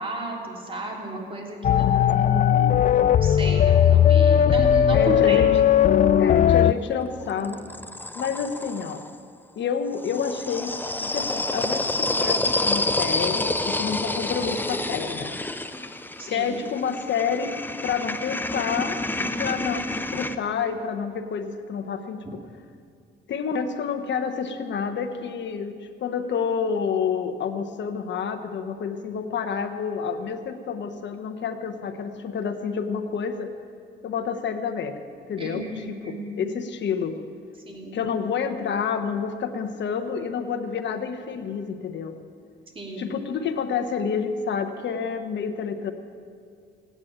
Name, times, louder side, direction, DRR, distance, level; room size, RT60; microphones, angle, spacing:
voice 1, 0.0-2.8 3.2-5.4 16.2-16.6 35.4-36.5 37.7-38.0 42.8-43.1, right 2 dB, 25° right, -1 dB, 3.6 m, -33 dB
sound 1, 1.6-6.7, left 9 dB, 40° left, 0.4 m, -18 dB
voice 2, 4.9-5.5 6.2-7.6 8.1-9.0 9.6-15.4 16.3-17.5 17.8-22.4 23.3-33.5 34.0-35.0 35.3-37.1 37.9-42.2 43.0-45.9, left 6 dB, 65° left, 8 dB, 1.3 m, -29 dB
sound 2, 6.7-9.1 9.9-20.4, left 2 dB, 10° left, 0.7 m, -28 dB
16.0 x 9.7 x 8.8 m, 2.2 s
cardioid pair, 90°, 20 cm